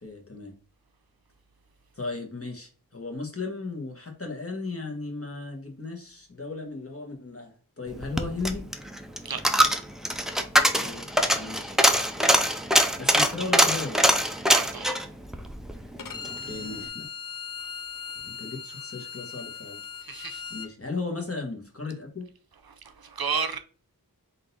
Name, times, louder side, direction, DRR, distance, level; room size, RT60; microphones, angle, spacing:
voice 1, 0.0-0.6 1.9-8.7 10.8-11.1 11.3-11.8 13.0-14.1 16.5-17.0 18.2-19.8 20.5-22.3, left 3 dB, 40° left, 1.3 m, -35 dB
Coin (dropping), 7.9-16.4 16.7-16.8, equal, ahead, 0.5 m, -23 dB
voice 2, 14.5-15.0 20.1-20.4 23.0-23.6, right 6 dB, 70° right, 0.6 m, -31 dB
Bowed string instrument, 16.0-20.7, left 6 dB, 60° left, 0.5 m, -39 dB
3.8 x 2.7 x 4.0 m
wide cardioid pair, 40°, 37 cm